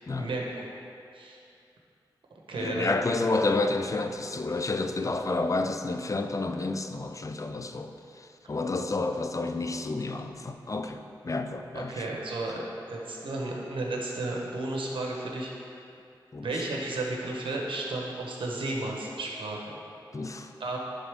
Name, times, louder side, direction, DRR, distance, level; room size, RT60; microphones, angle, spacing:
voice 1, 0.2-0.7 1.1-1.4 2.5-3.0 11.7-15.5 16.4-19.6 20.6-20.8, right 2 dB, 85° right, -1 dB, 0.9 m, -33 dB
voice 2, 2.6-7.9 8.5-11.9 16.3-16.5 20.1-20.5, left 3 dB, 40° left, 6 dB, 0.5 m, -30 dB
10.5 x 3.7 x 3.5 m, 2.5 s
cardioid pair, 50°, 8 cm